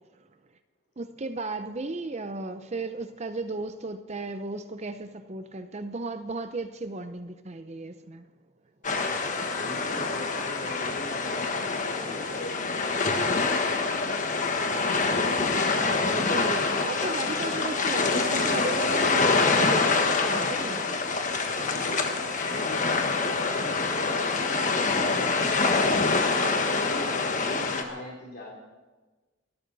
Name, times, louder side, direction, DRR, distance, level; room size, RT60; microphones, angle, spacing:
voice 1, 1.0-8.3 15.7-21.0, right 3 dB, 35° right, 0.6 m, -35 dB
sound 1, 8.8-27.8, left 4 dB, 40° left, 1.4 m, -26 dB
voice 2, 8.9-13.5 21.5-28.5, left 1 dB, 55° left, 3.1 m, -41 dB
29.0 x 12.5 x 4.0 m
head